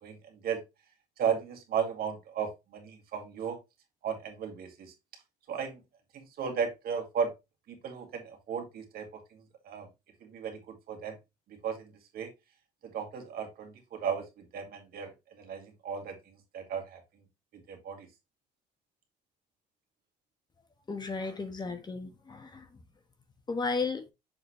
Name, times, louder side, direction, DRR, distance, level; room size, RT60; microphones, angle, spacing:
voice 1, 0.0-0.6 1.2-3.6 4.0-4.9 5.5-5.8 6.1-7.3 7.7-9.9 10.2-11.2 11.5-12.3 12.8-17.2 17.5-18.1, right 7 dB, 65° right, 2.1 m, -35 dB
voice 2, 20.9-22.8 23.5-24.1, left 4 dB, 25° left, 1.3 m, -34 dB
7.2 x 4.0 x 3.2 m
cardioid pair, 110°, 17 cm